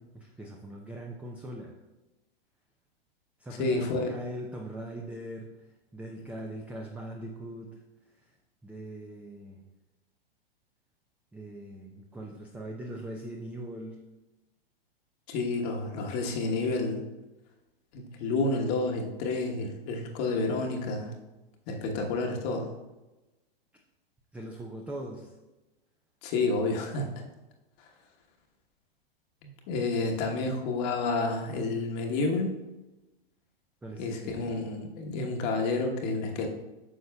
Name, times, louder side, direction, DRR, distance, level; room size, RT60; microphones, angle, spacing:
voice 1, 0.1-1.8 3.4-7.8 8.1-8.4 8.6-9.6 11.3-14.0 24.3-25.3 33.8-34.4, right 1 dB, 5° right, 0 dB, 0.5 m, -41 dB
voice 2, 3.6-4.1 15.3-17.0 17.9-21.1 21.7-22.7 26.2-27.1 29.4-32.6 34.0-36.5, left 3 dB, 40° left, 2 dB, 1.2 m, -30 dB
9.7 x 6.4 x 2.3 m, 1.1 s
hypercardioid pair, 105°, 30 cm